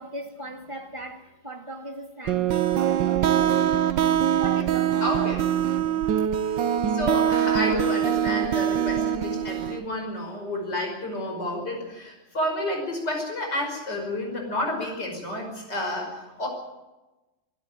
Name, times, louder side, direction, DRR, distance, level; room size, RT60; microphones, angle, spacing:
voice 1, 0.0-3.6 4.4-5.0, right 1 dB, 15° right, 1.9 m, -39 dB
sound 1, 2.3-9.8, right 9 dB, 70° right, 1.5 m, -23 dB
voice 2, 5.0-5.5 6.5-6.6 6.9-16.5, left 1 dB, 55° left, 6.1 m, -30 dB
25.0 x 13.0 x 9.0 m
omnidirectional pair, 2.1 m